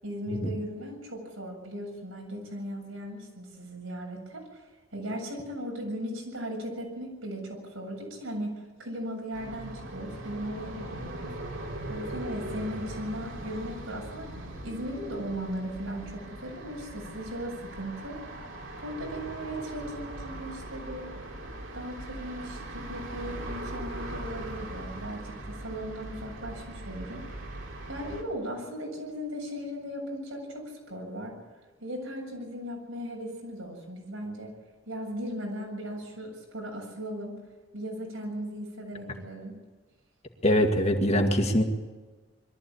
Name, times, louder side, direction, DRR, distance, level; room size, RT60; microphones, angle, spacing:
voice 1, 0.0-4.6 4.9-11.4 11.9-18.2 18.8-21.1 21.7-27.5 27.9-31.4 31.8-34.5 34.9-37.4 37.7-39.5, equal, 85° right, 0 dB, 7.5 m, -37 dB
sound 1, 9.3-28.2, right 1 dB, 70° right, 3.7 m, -40 dB
voice 2, 40.4-41.6, left 1 dB, 30° left, 4 dB, 2.1 m, -23 dB
22.5 x 14.0 x 8.8 m, 1.3 s
head